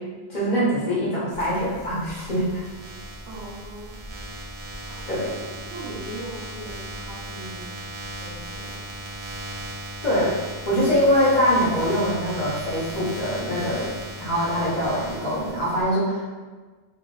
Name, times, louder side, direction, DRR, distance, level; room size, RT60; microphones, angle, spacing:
voice 1, 0.3-2.6 5.1-5.3 10.0-10.3 10.7-13.9 14.2-16.3, equal, 45° left, -9 dB, 1.0 m, -23 dB
sound 1, 1.3-15.8, right 1 dB, 45° right, 0.5 m, -37 dB
voice 2, 3.2-4.0 4.9-5.0 5.2-5.4 5.7-7.8 8.2-8.8, right 1 dB, 80° right, -4 dB, 1.0 m, -39 dB
3.0 x 2.6 x 2.3 m, 1.3 s
omnidirectional pair, 1.1 m